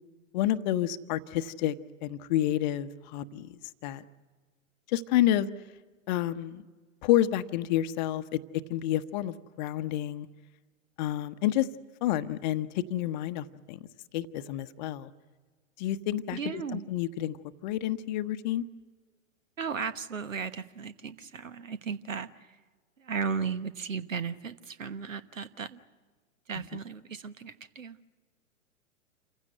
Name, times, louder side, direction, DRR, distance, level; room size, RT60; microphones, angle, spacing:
voice 1, 0.3-1.7 2.0-3.6 3.8-4.0 4.9-5.5 6.1-6.6 7.0-8.4 8.7-10.3 11.0-11.7 12.0-13.8 14.1-15.1 15.8-17.4 17.6-18.6, left 12 dB, 35° left, 11 dB, 0.8 m, -29 dB
voice 2, 16.3-16.9 19.6-22.6 23.0-25.8 26.5-28.0, right 6 dB, 75° right, 13 dB, 1.3 m, -35 dB
28.0 x 15.5 x 9.2 m, 1.4 s
figure-of-eight pair, 110°, 39 cm